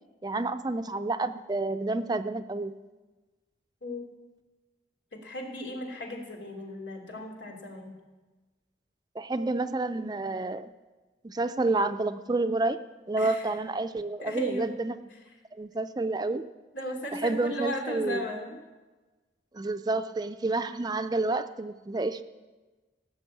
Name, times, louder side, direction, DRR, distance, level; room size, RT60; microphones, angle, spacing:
voice 1, 0.2-2.7 9.2-10.7 11.2-12.8 13.1-15.0 15.5-16.4 17.2-18.2 19.5-22.2, right 2 dB, 25° right, 10 dB, 0.5 m, -29 dB
voice 2, 5.1-8.0 13.2-13.5 14.2-14.7 16.7-18.6, left 1 dB, 90° left, 1 dB, 2.9 m, -36 dB
17.0 x 6.5 x 8.5 m, 1.2 s
head